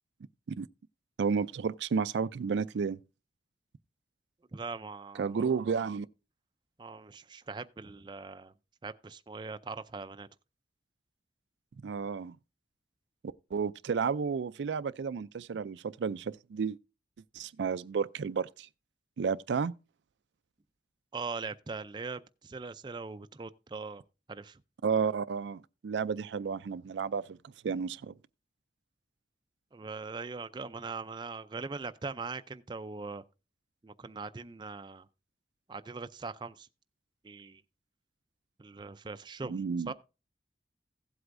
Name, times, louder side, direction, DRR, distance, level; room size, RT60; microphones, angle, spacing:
voice 1, 1.2-3.0 5.2-6.1 11.8-12.4 13.5-16.8 17.3-18.7 19.2-19.7 24.8-27.4 27.6-28.1 39.4-39.9, right 6 dB, 85° right, 0.4 m, -32 dB
voice 2, 4.5-5.5 6.8-8.5 8.8-10.3 21.1-24.0 24.3-24.6 29.7-33.2 33.8-35.1 35.7-36.7 37.2-37.6 38.6-39.5 39.9-40.0, right 4 dB, 25° right, 0.4 m, -41 dB
16.0 x 7.9 x 2.6 m
head